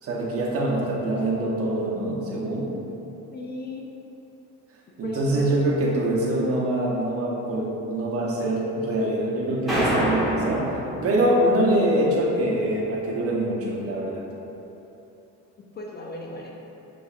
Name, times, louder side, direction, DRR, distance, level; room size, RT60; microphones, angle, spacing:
voice 1, 0.0-2.7 5.0-10.7 11.0-14.2, right 1 dB, 45° right, -3 dB, 0.9 m, -24 dB
voice 2, 3.3-3.9 5.0-5.7 15.7-16.6, left 2 dB, 30° left, -1 dB, 0.4 m, -35 dB
sound 1, 9.7-11.7, equal, ahead, 1.0 m, -26 dB
6.7 x 2.5 x 2.4 m, 2.9 s
cardioid pair, 110°, 32 cm